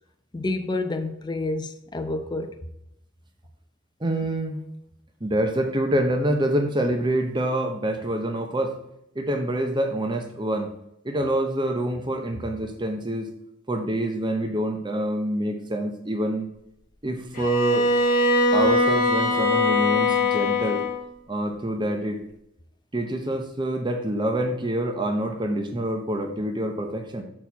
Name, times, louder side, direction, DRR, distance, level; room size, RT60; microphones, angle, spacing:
voice 1, 0.3-2.6, left 2 dB, 20° left, 0.6 m, -29 dB
voice 2, 4.0-4.6 5.2-8.7 9.1-10.7 11.0-13.3 13.7-16.5 17.0-17.9 18.5-20.8 21.3-22.2 22.9-27.2, right 1 dB, 25° right, 0.8 m, -26 dB
Bowed string instrument, 17.3-21.1, left 2 dB, 40° left, 1.2 m, -21 dB
6.5 x 4.4 x 5.6 m
head